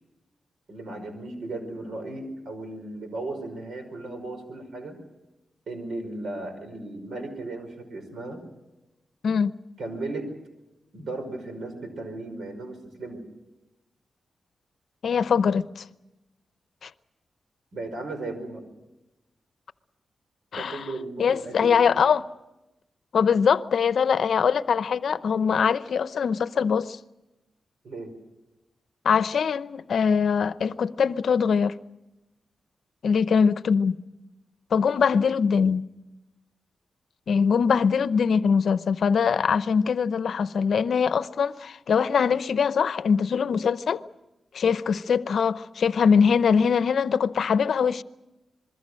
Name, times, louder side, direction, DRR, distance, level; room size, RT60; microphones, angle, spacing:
voice 1, 0.7-5.0 5.7-8.4 9.8-10.3 10.9-13.2 17.7-18.6 20.5-21.9 27.8-28.1, right 2 dB, 75° right, 5.4 m, -36 dB
voice 2, 15.0-15.8 16.8-16.9 20.5-20.8 21.2-22.2 23.1-27.0 29.0-31.7 33.0-34.0 34.7-35.8 37.3-44.0 44.5-48.0, left 6 dB, 75° left, 0.7 m, -22 dB
26.5 x 22.0 x 6.4 m
cardioid pair, 90°, 0 cm